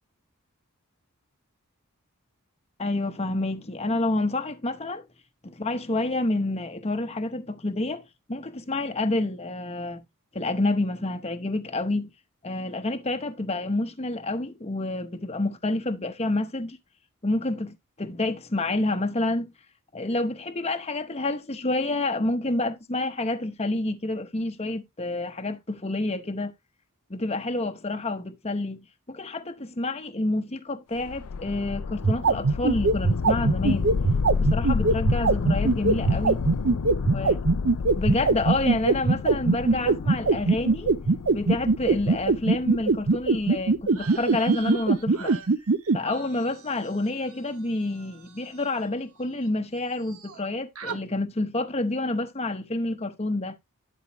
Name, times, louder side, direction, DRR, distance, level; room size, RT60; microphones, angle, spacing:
voice 1, 2.8-5.0 5.4-10.0 10.3-12.1 12.4-16.8 17.2-19.5 19.9-26.5 27.1-33.9 34.4-36.4 37.1-37.4 37.9-40.9 41.3-45.3 45.9-53.6, left 2 dB, 30° left, 0.9 m, -28 dB
sound 1, 31.0-44.0, left 5 dB, 75° left, 0.5 m, -30 dB
sound 2, 31.9-46.0, right 3 dB, 55° right, 0.6 m, -20 dB
sound 3, 43.9-49.5 49.7-50.5 50.7-51.0, right 6 dB, 70° right, 1.3 m, -43 dB
11.5 x 5.3 x 3.0 m
head